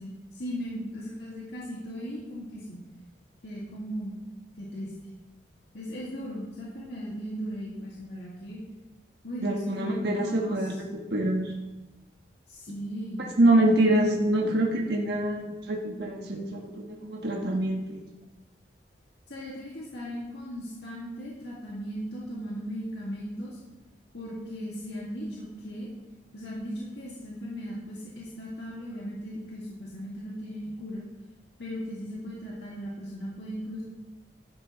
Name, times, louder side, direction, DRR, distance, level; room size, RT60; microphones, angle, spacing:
voice 1, 0.0-2.8 3.4-4.1 4.6-4.9 5.7-8.6 9.2-10.6 12.5-13.3 19.3-23.6 24.1-25.9 26.3-31.0 31.6-33.8, equal, 70° left, -5 dB, 2.0 m, -37 dB
voice 2, 9.4-10.8 11.1-11.5 13.2-18.0, right 1 dB, 65° right, -1 dB, 1.3 m, -25 dB
13.0 x 11.0 x 3.1 m, 1.1 s
head